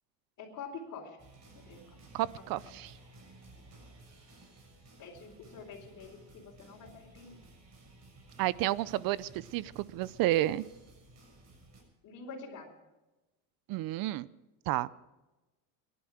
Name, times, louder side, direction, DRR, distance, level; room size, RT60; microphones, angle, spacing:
voice 1, 0.4-1.2 1.5-2.0 5.0-7.4 12.0-12.7, left 4 dB, 45° left, -3 dB, 4.4 m, -46 dB
sound 1, 1.2-11.8, right 2 dB, 40° right, 6.5 m, -56 dB
voice 2, 2.1-2.9 8.4-10.6 13.7-14.3 14.7-14.9, right 15 dB, 55° right, 19 dB, 0.7 m, -31 dB
23.0 x 11.0 x 5.0 m, 1.1 s
supercardioid pair, 125°, 42 cm